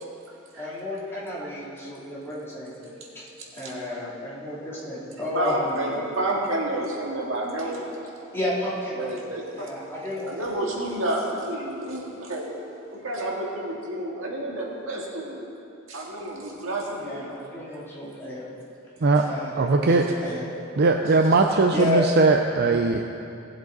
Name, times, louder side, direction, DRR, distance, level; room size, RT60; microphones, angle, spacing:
voice 1, 0.5-2.8 3.1-3.2 3.5-6.0 8.3-9.2 9.5-10.3 17.0-18.5 19.2-20.5 21.7-22.1, left 2 dB, 10° left, -8 dB, 2.8 m, -32 dB
voice 2, 3.4-3.7 5.3-7.9 8.9-9.4 10.3-12.5 12.9-15.5 15.9-17.3 17.7-17.8 20.8-20.9, right 1 dB, 75° right, -2 dB, 2.0 m, -30 dB
voice 3, 19.6-20.1 20.8-23.0, right 3 dB, 50° right, 4 dB, 0.5 m, -19 dB
18.5 x 7.6 x 4.0 m, 2.7 s
head